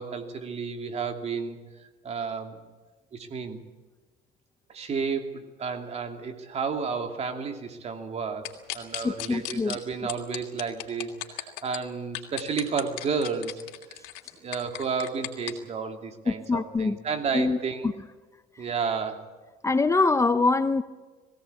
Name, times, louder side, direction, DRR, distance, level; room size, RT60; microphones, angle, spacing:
voice 1, 0.0-1.6 2.0-2.6 3.1-3.6 4.7-13.6 13.9-14.0 14.4-17.9 18.6-19.3, right 5 dB, 35° right, 5 dB, 2.7 m, -32 dB
sound 1, 8.4-9.8 10.1-11.8 12.1-15.5, left 19 dB, 85° left, 2.9 m, -35 dB
voice 2, 9.0-9.8 16.3-17.0 17.3-17.6 17.8-17.9 19.6-20.8, left 3 dB, 15° left, 11 dB, 0.8 m, -24 dB
20.5 x 17.0 x 8.4 m, 1.3 s
cardioid pair, 120°, 18 cm